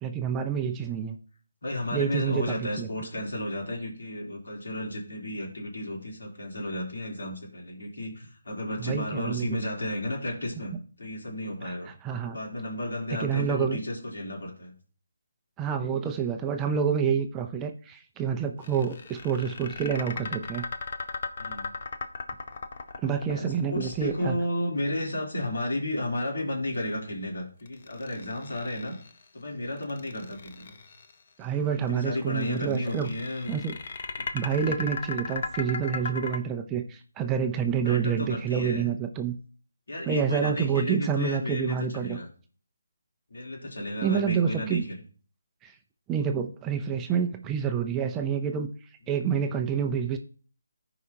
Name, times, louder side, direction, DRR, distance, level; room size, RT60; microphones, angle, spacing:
voice 1, 0.0-1.2 1.9-2.9 8.8-9.6 11.6-12.4 13.2-13.8 15.6-20.6 23.0-24.3 31.4-33.1 33.5-33.8 34.3-39.4 40.1-42.2 44.0-44.9 45.6-45.7 46.1-48.7 49.1-50.2, right 7 dB, 10° right, 5 dB, 0.5 m, -28 dB
voice 2, 1.6-10.7 11.0-11.9 12.2-14.7 21.4-21.7 23.3-28.9 29.3-30.8 31.7-33.6 34.2-34.3 37.6-38.9 39.9-42.3 43.3-45.0, left 1 dB, 75° left, -1 dB, 3.2 m, -33 dB
sound 1, 18.6-24.8 27.7-29.2 29.8-31.1 32.4-36.4, left 4 dB, 40° left, 0.8 m, -37 dB
14.5 x 4.9 x 2.8 m, 0.42 s
hypercardioid pair, 165°, 0 cm